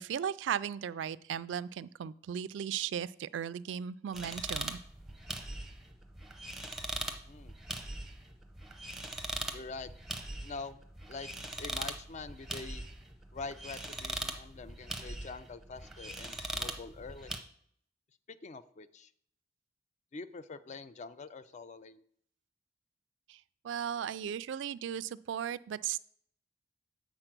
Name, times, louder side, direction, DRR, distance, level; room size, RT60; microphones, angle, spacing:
voice 1, 0.0-4.8 23.3-26.0, right 8 dB, 70° right, 17 dB, 0.3 m, -36 dB
sound 1, 4.1-17.4, right 1 dB, ahead, 0.7 m, -41 dB
voice 2, 7.2-7.6 9.5-9.9 10.4-10.8 11.1-11.3 11.6-12.8 13.3-17.3 18.3-19.1 20.1-22.0, left 4 dB, 40° left, 14 dB, 0.4 m, -45 dB
7.8 x 4.2 x 5.9 m, 0.66 s
head